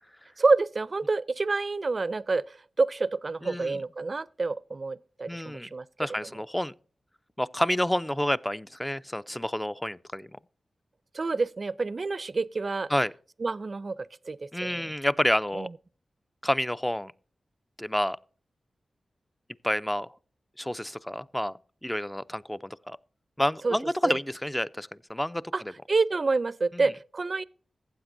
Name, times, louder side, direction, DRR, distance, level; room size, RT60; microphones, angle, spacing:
voice 1, 0.4-6.1 11.1-12.9 13.4-14.9 15.5-15.7 23.6-23.8 24.0-24.2 25.5-25.6 25.9-27.4, right 3 dB, 50° right, 0.4 m, -28 dB
voice 2, 3.4-3.8 5.3-5.7 6.0-6.7 7.4-10.3 12.9-13.1 14.5-15.7 16.4-17.1 17.8-18.2 19.6-20.1 20.6-21.5 21.8-23.0 23.4-25.7 26.7-26.8, equal, 10° left, 0.4 m, -29 dB
15.0 x 8.0 x 2.6 m
cardioid pair, 65°, 0 cm